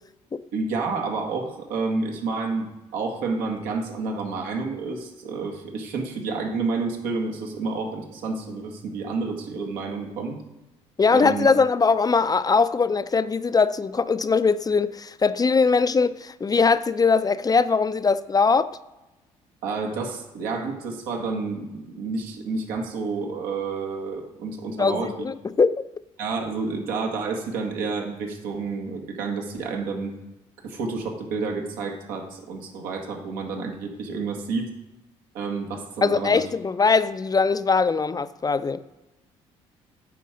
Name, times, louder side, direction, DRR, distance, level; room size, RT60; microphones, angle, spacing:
voice 1, 0.5-10.4 11.1-11.5 19.6-25.2 26.2-30.2 30.6-34.7 35.3-36.4, right 4 dB, 80° right, 1.9 m, -29 dB
voice 2, 11.0-18.8 24.8-25.8 36.0-38.8, left 4 dB, 25° left, 0.5 m, -21 dB
9.4 x 6.2 x 5.1 m
supercardioid pair, 60°, 14 cm